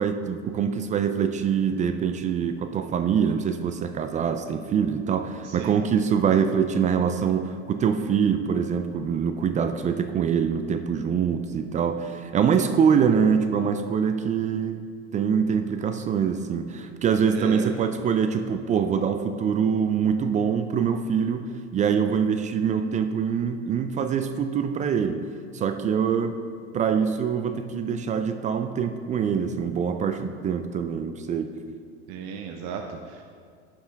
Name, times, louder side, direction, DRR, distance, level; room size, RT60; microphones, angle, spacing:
voice 1, 0.0-14.9 15.1-25.2 25.5-26.4 26.7-31.5, right 7 dB, 25° right, 8 dB, 0.3 m, -24 dB
voice 2, 17.3-17.7 32.1-33.2, right 7 dB, 55° right, 3 dB, 0.7 m, -35 dB
9.7 x 5.6 x 3.4 m, 2.1 s
supercardioid pair, 110°, 33 cm